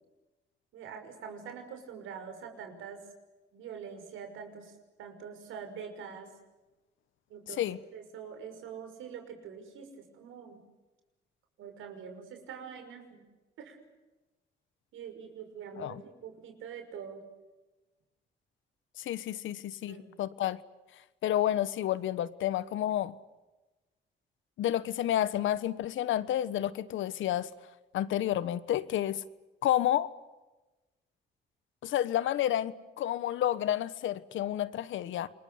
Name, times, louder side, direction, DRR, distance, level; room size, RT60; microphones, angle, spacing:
voice 1, 0.7-3.0 3.5-6.3 7.3-7.6 7.9-10.6 11.6-13.2 13.6-13.8 14.9-17.2 19.9-20.1, right 7 dB, 85° right, 5 dB, 6.0 m, -44 dB
voice 2, 19.0-20.6 21.2-23.1 24.6-27.5 27.9-29.2 29.6-30.1 31.8-35.3, left 12 dB, 80° left, 16 dB, 1.2 m, -30 dB
28.5 x 22.0 x 8.0 m, 1.1 s
cardioid pair, 90°, 20 cm